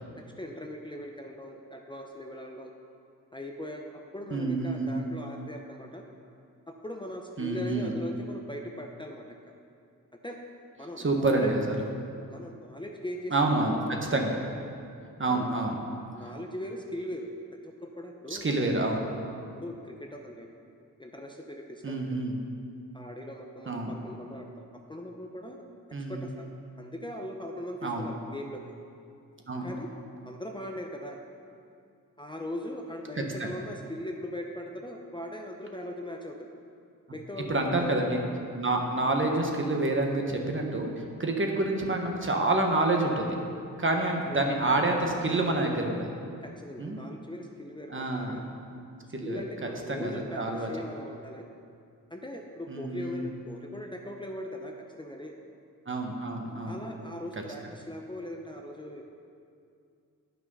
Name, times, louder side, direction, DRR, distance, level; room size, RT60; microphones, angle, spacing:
voice 1, 0.2-2.7 3.3-6.0 6.7-9.4 10.2-10.4 10.8-11.5 12.3-13.7 15.3-15.7 16.1-17.3 17.6-18.5 19.6-20.5 21.0-22.2 22.9-24.6 24.9-25.6 26.0-26.5 26.8-28.6 29.6-29.9 30.3-31.2 32.2-36.5 37.1-37.9 44.3-44.4 46.4-48.4 49.0-51.4 52.1-55.3 56.7-59.0, left 1 dB, 15° left, 1 dB, 0.7 m, -39 dB
voice 2, 4.3-4.9 7.4-7.9 11.0-11.6 13.3-13.8 14.1-14.3 15.2-15.7 18.3-19.0 21.8-22.4 23.7-23.9 25.9-26.2 27.8-28.1 29.5-29.7 33.4-33.5 37.5-38.2 38.5-43.4 43.8-46.1 46.8-47.0 47.9-48.4 49.1-49.4 49.9-50.7 52.7-53.2 55.9-56.8, right 2 dB, 35° right, 2 dB, 1.3 m, -28 dB
9.3 x 5.9 x 5.5 m, 2.4 s
cardioid pair, 60°, 35 cm